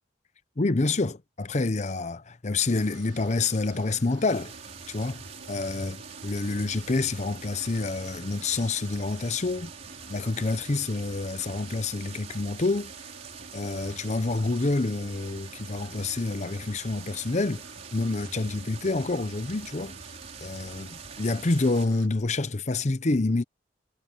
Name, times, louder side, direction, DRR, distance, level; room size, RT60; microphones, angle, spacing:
voice 1, 0.6-4.5 4.9-9.7 10.1-12.9 13.5-17.6 17.9-19.9 20.4-23.4, left 3 dB, 40° left, 0.7 m, -28 dB
sound 1, 2.6-22.1, right 4 dB, 80° right, 3.7 m, -50 dB
sound 2, 4.3-21.8, right 5 dB, 35° right, 5.5 m, -45 dB
head